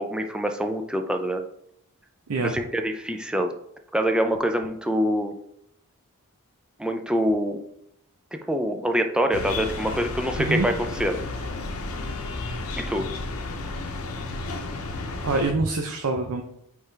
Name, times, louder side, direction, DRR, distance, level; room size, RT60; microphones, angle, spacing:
voice 1, 0.0-1.4 2.4-3.5 3.9-5.3 6.8-7.6 8.5-11.1 12.7-13.0, equal, 5° right, 5 dB, 0.5 m, -25 dB
voice 2, 2.3-2.6 10.4-10.7 15.2-16.4, right 3 dB, 85° right, 4 dB, 0.6 m, -25 dB
sound 1, 9.3-15.5, left 3 dB, 75° left, 0.8 m, -32 dB
8.3 x 3.5 x 3.3 m, 0.75 s
head